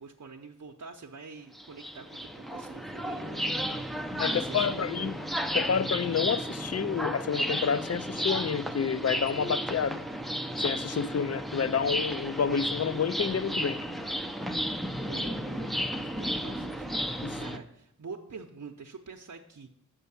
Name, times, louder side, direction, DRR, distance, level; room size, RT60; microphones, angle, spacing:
voice 1, 0.0-3.9 4.2-5.1 15.0-19.7, right 4 dB, 70° right, 1 dB, 0.7 m, -46 dB
sound 1, 1.6-17.6, equal, ahead, 0.6 m, -33 dB
voice 2, 4.1-5.1 5.5-10.0 10.6-13.8 17.2-17.4, left 7 dB, 55° left, 15 dB, 0.5 m, -29 dB
7.3 x 5.6 x 7.0 m, 0.75 s
wide cardioid pair, 45°, 31 cm